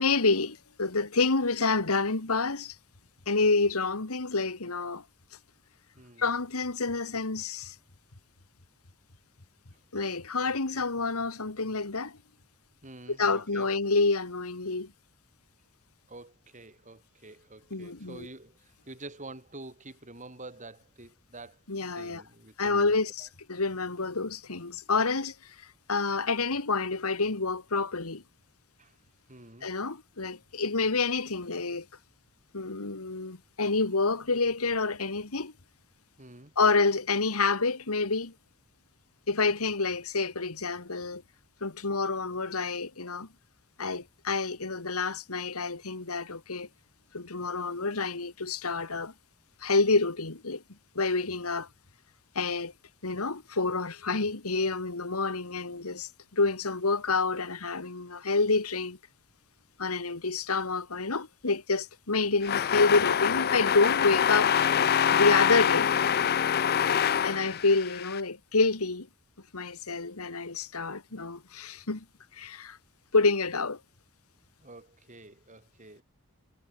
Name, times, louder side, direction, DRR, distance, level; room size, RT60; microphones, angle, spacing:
voice 1, 0.0-2.8 3.3-5.0 6.2-7.8 9.9-12.2 13.1-14.9 17.7-18.3 21.7-22.2 22.6-28.2 29.6-31.9 32.5-35.5 36.6-38.3 39.3-41.2 41.6-43.3 43.8-46.7 47.1-49.1 49.6-50.6 51.0-51.7 52.4-52.7 53.0-59.0 59.8-64.5 65.1-65.9 67.2-69.1 69.5-72.1 72.3-72.8 73.1-73.8, left 3 dB, 85° left, 2.0 m, -28 dB
voice 2, 12.8-13.7 16.1-21.6 21.9-23.0 28.8-28.9 29.3-29.7 36.2-36.5 66.9-67.2 74.6-76.0, right 2 dB, 35° right, 6.0 m, -48 dB
sound 1, 62.4-68.2, left 8 dB, 45° left, 0.5 m, -25 dB
head